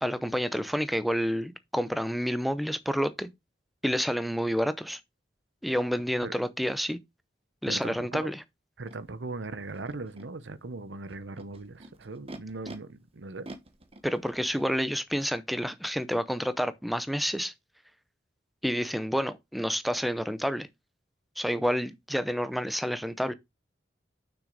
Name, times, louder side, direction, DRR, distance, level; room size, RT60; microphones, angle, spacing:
voice 1, 0.0-3.3 3.8-5.0 5.6-7.0 7.6-8.4 14.0-17.5 18.6-20.7 21.4-23.3, equal, ahead, 0.6 m, -29 dB
voice 2, 7.7-8.3 8.8-13.5, right 3 dB, 90° right, 0.8 m, -39 dB
Animal, 8.9-9.0 9.7-10.3 11.1-12.8 13.4-14.7, right 2 dB, 35° right, 1.2 m, -46 dB
6.7 x 6.1 x 4.0 m
head